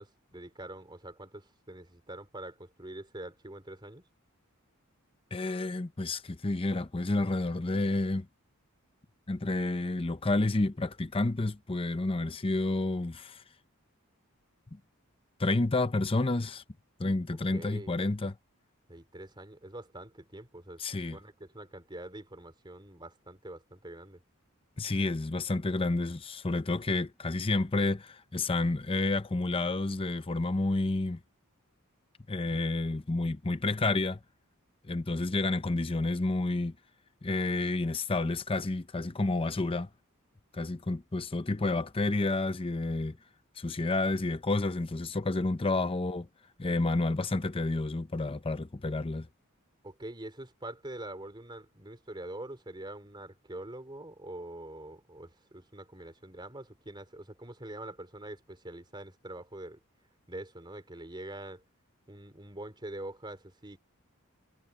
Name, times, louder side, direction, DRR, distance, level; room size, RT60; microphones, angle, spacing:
voice 1, 0.0-4.0 17.5-17.9 18.9-24.2 45.8-46.0 49.8-59.8 60.3-61.6 62.1-63.8, right 1 dB, 20° right, 3.6 m, -44 dB
voice 2, 5.3-8.3 9.3-13.4 14.7-14.8 15.4-16.6 17.0-18.3 20.8-21.2 24.8-31.2 32.3-34.2 34.9-36.7 37.2-39.9 40.5-43.2 43.6-46.3 46.6-49.3, left 2 dB, 25° left, 0.7 m, -30 dB
head